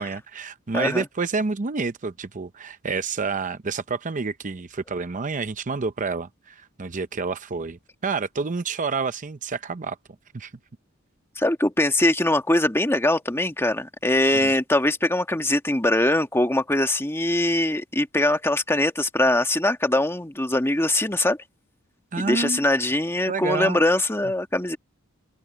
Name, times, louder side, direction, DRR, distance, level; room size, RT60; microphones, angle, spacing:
voice 1, 0.0-10.0 10.3-10.5 14.3-14.5 22.1-22.6 23.3-23.8, right 4 dB, 40° right, 0.7 m, -29 dB
voice 2, 0.7-1.0 11.4-21.4 22.2-24.8, left 1 dB, 10° left, 1.5 m, -22 dB
open air
head